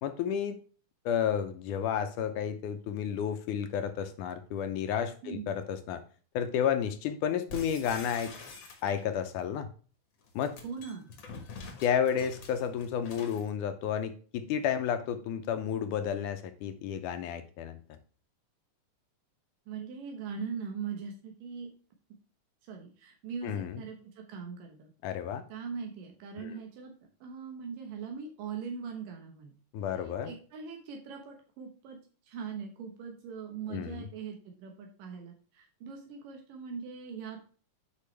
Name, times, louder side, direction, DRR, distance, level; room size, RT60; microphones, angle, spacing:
voice 1, 0.0-0.6 1.1-6.0 6.3-8.3 8.8-9.7 10.4-10.6 11.8-17.8 23.4-23.8 25.0-25.4 26.4-26.5 29.7-30.3 33.7-34.1, left 8 dB, 75° left, 9 dB, 2.1 m, -31 dB
sound 1, 7.5-9.2 10.2-13.5, left 3 dB, 50° left, 1.6 m, -46 dB
voice 2, 10.6-11.1 19.7-21.7 22.7-24.9 25.5-26.9 27.2-29.5 30.0-32.0 32.3-37.4, right 6 dB, 85° right, 2 dB, 2.8 m, -41 dB
8.5 x 5.4 x 3.3 m, 0.39 s
omnidirectional pair, 3.8 m